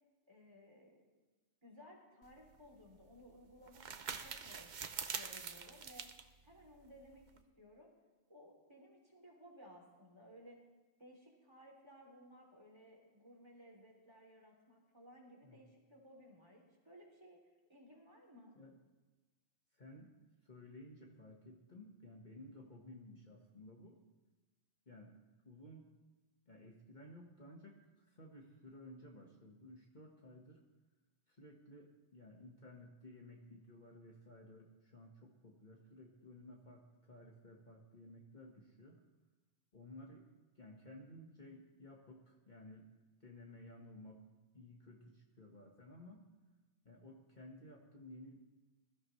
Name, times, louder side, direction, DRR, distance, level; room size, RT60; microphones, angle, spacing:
voice 1, 0.3-1.0 1.6-4.7 5.1-6.1 6.4-7.3 7.6-7.9 8.3-10.6 11.0-17.4 17.7-18.5, equal, 20° right, -1 dB, 3.2 m, -59 dB
sound 1, 2.2-7.4, right 6 dB, 45° right, 0.8 m, -46 dB
voice 2, 19.7-20.1 20.4-24.0 24.9-25.1 25.4-25.9 26.5-30.6 31.3-39.0 39.7-40.3 40.5-42.9 43.2-44.3 44.5-46.3 46.8-48.4, left 1 dB, 40° left, -1 dB, 1.6 m, -56 dB
21.5 x 13.5 x 3.2 m, 1.2 s
omnidirectional pair, 1.2 m